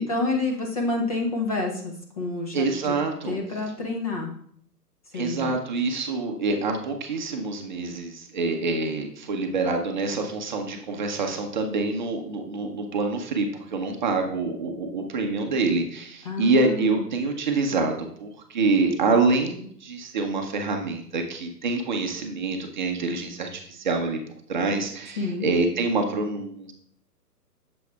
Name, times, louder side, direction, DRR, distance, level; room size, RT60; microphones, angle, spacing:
voice 1, 0.0-2.9 3.3-4.3 5.1-5.5 16.2-17.0 25.2-25.5, left 3 dB, 25° left, 0 dB, 0.6 m, -28 dB
voice 2, 2.5-3.4 5.1-24.2 24.5-26.7, right 3 dB, 30° right, 3 dB, 0.7 m, -26 dB
7.9 x 7.0 x 2.3 m, 0.62 s
figure-of-eight pair, 135°, 49 cm